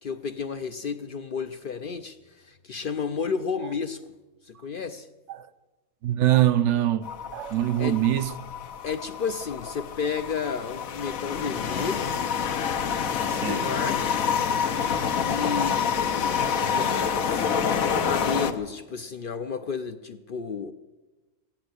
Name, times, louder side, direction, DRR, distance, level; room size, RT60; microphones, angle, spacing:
voice 1, 0.0-4.0 4.4-5.1 7.8-8.0 8.8-12.1 13.5-14.2 15.2-16.4 16.7-17.5 18.0-20.7, left 6 dB, 55° left, 0.6 m, -32 dB
voice 2, 6.0-8.3 13.3-13.8 15.6-15.7 16.7-16.9, right 13 dB, 65° right, 0.9 m, -24 dB
sound 1, 7.0-18.5, left 7 dB, 80° left, 1.3 m, -27 dB
15.5 x 10.5 x 7.9 m
omnidirectional pair, 1.4 m